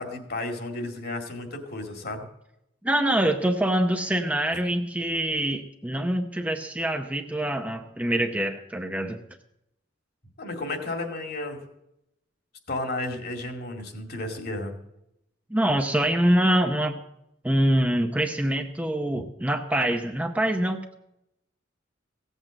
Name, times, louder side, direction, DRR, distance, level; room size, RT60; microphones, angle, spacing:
voice 1, 0.0-2.3 10.4-11.6 12.7-14.7, left 2 dB, 55° left, 4 dB, 2.2 m, -33 dB
voice 2, 2.8-9.2 15.5-17.0 17.4-20.9, right 1 dB, 5° right, 5 dB, 0.7 m, -25 dB
16.5 x 8.1 x 7.5 m, 0.84 s
head